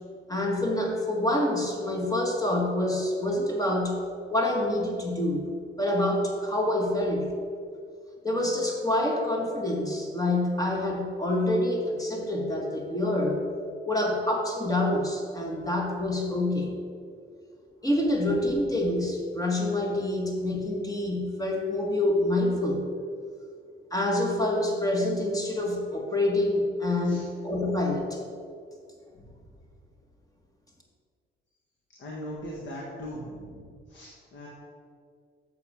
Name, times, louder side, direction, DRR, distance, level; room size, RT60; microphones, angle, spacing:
voice 1, 0.3-4.0 4.3-5.5 5.8-7.3 8.2-13.4 13.9-16.8 17.8-22.8 23.9-28.2, left 1 dB, 15° left, 0 dB, 1.5 m, -27 dB
voice 2, 32.0-34.5, equal, 65° left, -3 dB, 1.6 m, -40 dB
8.1 x 6.8 x 4.9 m, 2.2 s
cardioid pair, 90°, 20 cm